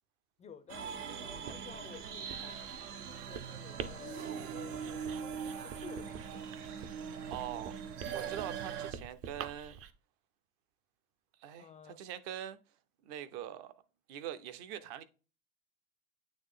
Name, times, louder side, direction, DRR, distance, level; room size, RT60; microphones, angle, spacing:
voice 1, 0.4-2.7 3.0-5.0 5.6-6.3 11.6-12.0, left 7 dB, 15° left, 0.4 m, -52 dB
sound 1, 0.7-8.9, right 7 dB, 80° right, 1.3 m, -41 dB
Writing, 1.3-9.9, right 7 dB, 30° right, 0.6 m, -48 dB
voice 2, 7.3-7.7 8.1-9.8 11.4-12.6 13.0-13.7 14.1-15.0, right 11 dB, 50° right, 0.9 m, -43 dB
8.7 x 3.2 x 3.7 m
supercardioid pair, 120°, 44 cm